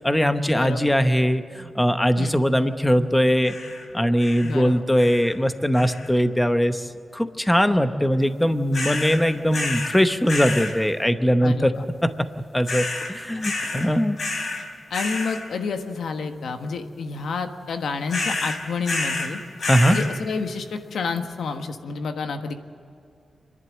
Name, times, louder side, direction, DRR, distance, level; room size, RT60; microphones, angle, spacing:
voice 1, 0.0-3.5 3.9-6.8 7.1-11.7 12.5-14.2 19.7-20.0, equal, 5° left, 9 dB, 0.8 m, -21 dB
voice 2, 0.5-0.9 2.2-2.4 4.4-4.8 11.4-11.8 13.3-13.5 14.9-19.4 19.9-22.6, left 4 dB, 90° left, 6 dB, 1.4 m, -29 dB
sound 1, 3.4-3.8 4.2-4.6 5.0-5.3 5.7-6.2 8.7-9.2 9.5-10.0 10.3-10.7 12.7-13.1 13.4-13.9 14.2-14.6 14.9-15.4 18.1-19.3 19.6-20.1, left 3 dB, 55° left, 3.7 m, -29 dB
27.5 x 11.0 x 8.8 m, 2.5 s
wide cardioid pair, 155°, 0 cm